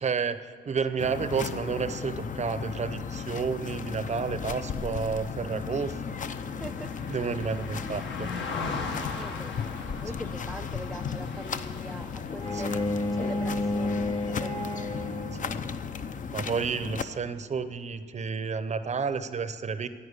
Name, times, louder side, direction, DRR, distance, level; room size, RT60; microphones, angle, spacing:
voice 1, 0.0-6.2 7.1-8.3 12.5-12.8 16.3-19.9, right 5 dB, 35° right, 12 dB, 0.7 m, -31 dB
sound 1, 1.0-17.0, left 6 dB, 40° left, 0.6 m, -35 dB
Car passing by, 5.0-14.5 14.9-15.1, left 4 dB, 70° left, 1.6 m, -40 dB
voice 2, 6.6-6.9 8.7-9.5 10.0-12.7 13.1-14.6, right 1 dB, ahead, 6 dB, 0.4 m, -42 dB
Bowed string instrument, 12.4-15.6, left 2 dB, 25° left, 1.1 m, -30 dB
11.0 x 9.2 x 8.1 m, 2.2 s
cardioid pair, 90°, 20 cm